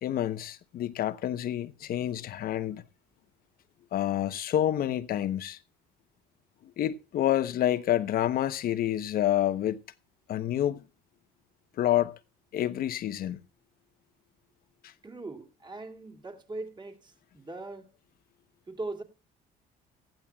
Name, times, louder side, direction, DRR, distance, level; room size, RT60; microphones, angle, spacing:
voice 1, 0.0-2.8 3.9-5.6 6.8-9.8 10.3-10.8 11.8-12.1 12.5-13.4, left 12 dB, 60° left, 0.9 m, -28 dB
voice 2, 15.0-17.9 18.7-19.0, right 2 dB, 25° right, 2.5 m, -40 dB
18.0 x 14.5 x 2.3 m
cardioid pair, 110°, 17 cm